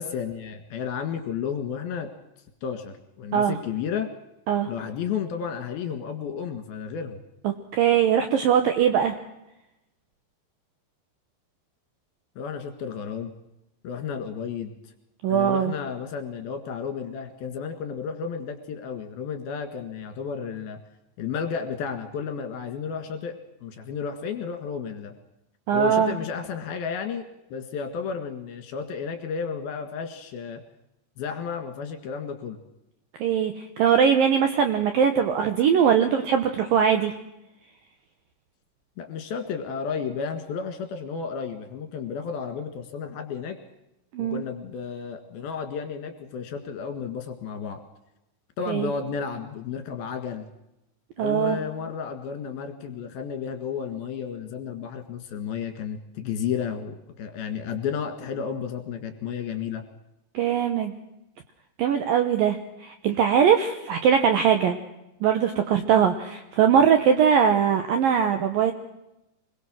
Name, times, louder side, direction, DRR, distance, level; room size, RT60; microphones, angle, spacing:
voice 1, 0.0-2.1 2.6-4.1 4.7-7.2 12.4-13.3 13.8-14.7 15.3-20.8 21.2-23.3 23.6-25.1 25.7-27.2 27.5-30.6 31.2-32.6 39.0-43.6 44.2-47.8 48.6-50.5 51.2-59.8, left 6 dB, 60° left, 6 dB, 3.5 m, -32 dB
voice 2, 7.4-9.1 15.2-15.7 25.7-26.1 33.2-37.1 44.1-44.4 48.7-48.9 51.2-51.6 60.3-60.9 61.8-64.8 65.2-68.7, right 8 dB, 75° right, 7 dB, 2.2 m, -21 dB
25.5 x 21.5 x 6.4 m, 0.89 s
omnidirectional pair, 5.4 m